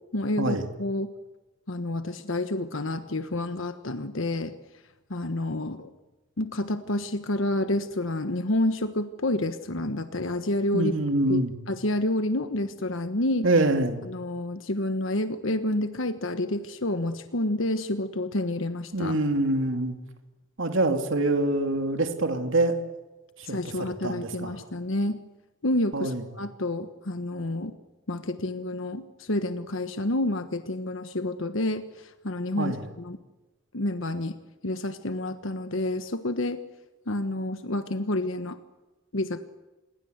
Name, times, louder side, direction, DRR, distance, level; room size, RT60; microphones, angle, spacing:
voice 1, 0.1-1.1 1.7-4.5 5.1-5.9 6.4-10.9 11.3-11.4 11.7-13.5 14.0-19.2 23.4-25.2 25.6-27.7 28.1-33.2 33.7-34.4 34.6-36.6 37.1-38.6 39.1-39.4, left 1 dB, 70° left, 9 dB, 1.3 m, -29 dB
voice 2, 10.7-11.5 13.4-14.0 18.9-19.9 20.6-22.8 23.4-24.6 25.9-26.2 32.6-32.8, right 2 dB, 70° right, 5 dB, 2.7 m, -25 dB
27.5 x 22.0 x 8.1 m, 1.1 s
head